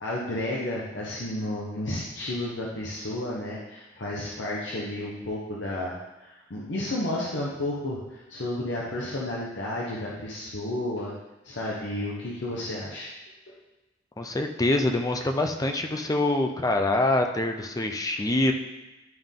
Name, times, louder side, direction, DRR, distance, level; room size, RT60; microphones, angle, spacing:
voice 1, 0.0-11.1 11.4-13.1 13.5-13.6, left 1 dB, 70° left, -5 dB, 1.1 m, -32 dB
voice 2, 14.2-18.5, left 2 dB, 20° left, 4 dB, 0.5 m, -25 dB
10.5 x 3.7 x 3.7 m, 1.0 s
head